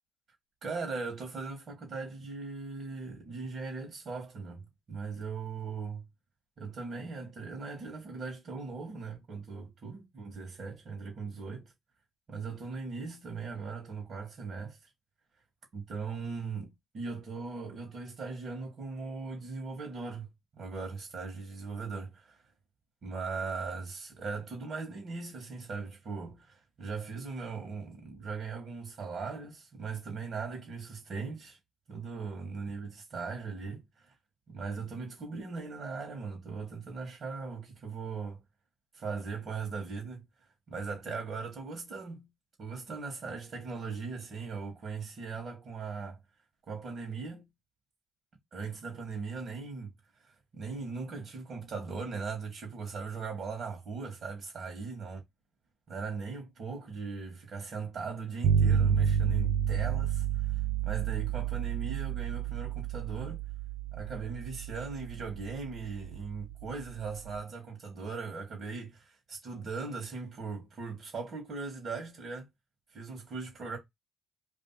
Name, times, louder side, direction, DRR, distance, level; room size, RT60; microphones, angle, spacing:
voice 1, 0.6-4.6 4.9-6.0 6.6-11.7 12.3-14.8 15.7-20.3 20.6-22.4 23.0-31.6 31.9-34.1 34.5-38.4 38.9-40.2 40.7-42.3 42.6-46.2 46.7-47.5 48.5-49.9 50.2-55.2 55.9-63.4 63.9-72.5 72.9-73.8, right 4 dB, 60° right, 2.1 m, -39 dB
sound 1, 58.4-67.4, right 8 dB, 75° right, 0.6 m, -30 dB
3.4 x 2.6 x 4.2 m
cardioid pair, 90°, 0 cm